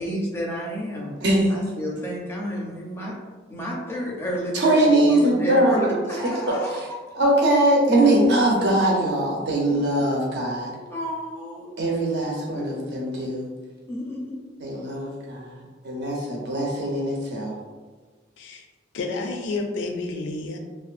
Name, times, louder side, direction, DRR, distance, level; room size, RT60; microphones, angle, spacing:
voice 1, 0.0-1.1 1.5-3.2 3.5-7.0 9.7-9.8 10.9-11.7 12.3-12.9 13.9-14.4, equal, 15° left, -3 dB, 0.4 m, -31 dB
voice 2, 1.2-1.5 4.5-6.0 6.2-6.3 6.7-6.8 7.1-10.7 11.8-13.5 14.6-15.5 15.8-17.5, right 1 dB, 65° right, -3 dB, 0.6 m, -21 dB
voice 3, 18.9-20.6, left 3 dB, 85° left, 4 dB, 0.4 m, -30 dB
2.6 x 2.2 x 2.4 m, 1.4 s
head